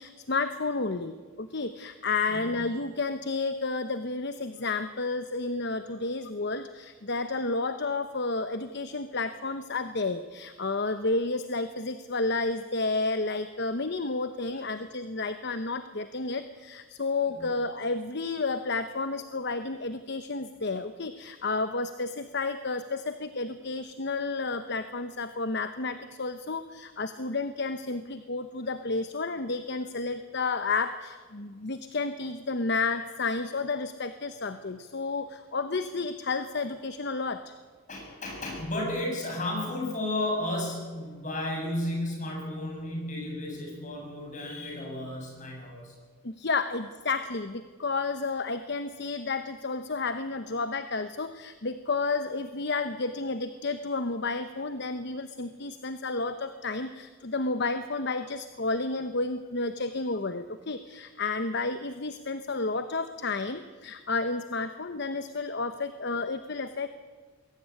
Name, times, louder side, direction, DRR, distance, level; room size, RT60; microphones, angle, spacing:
voice 1, 0.0-37.5 46.2-66.9, left 3 dB, 55° left, 10 dB, 1.0 m, -31 dB
voice 2, 37.9-45.9, left 1 dB, 35° left, 0 dB, 7.3 m, -33 dB
22.5 x 16.5 x 9.6 m, 1.4 s
head